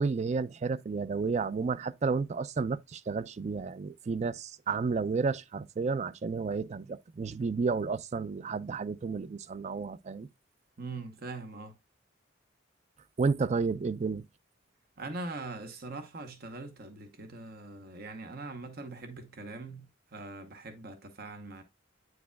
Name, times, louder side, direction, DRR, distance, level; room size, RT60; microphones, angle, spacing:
voice 1, 0.0-10.3 13.2-14.3, right 4 dB, 35° right, 0.4 m, -31 dB
voice 2, 10.8-11.8 15.0-21.6, right 3 dB, 55° right, 0.8 m, -42 dB
9.2 x 4.9 x 2.2 m
head